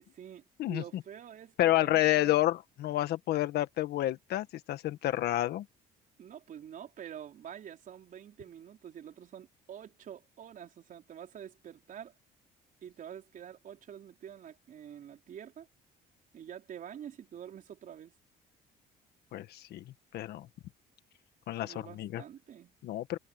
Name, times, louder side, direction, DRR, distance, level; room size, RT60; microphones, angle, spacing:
voice 1, 0.0-2.3 6.2-12.1 12.8-15.7 16.3-18.1 21.6-22.8, right 9 dB, 55° right, 5.0 m, -47 dB
voice 2, 0.6-1.0 1.6-5.7 19.3-20.5 21.5-22.2 22.8-23.2, left 15 dB, 70° left, 1.6 m, -30 dB
cardioid pair, 110°, 17 cm